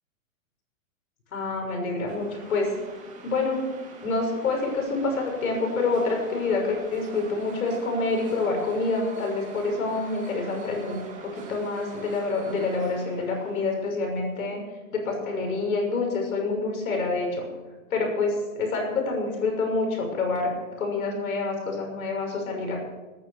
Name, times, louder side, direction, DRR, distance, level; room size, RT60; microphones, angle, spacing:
voice 1, 1.3-2.7 3.2-3.6 4.0-14.6 14.9-17.5 17.9-22.8, left 3 dB, 85° left, 2 dB, 6.4 m, -27 dB
sound 1, 2.1-14.4, right 4 dB, 20° right, 2.6 m, -44 dB
19.5 x 9.4 x 6.7 m, 1.2 s
hypercardioid pair, 145°, 41 cm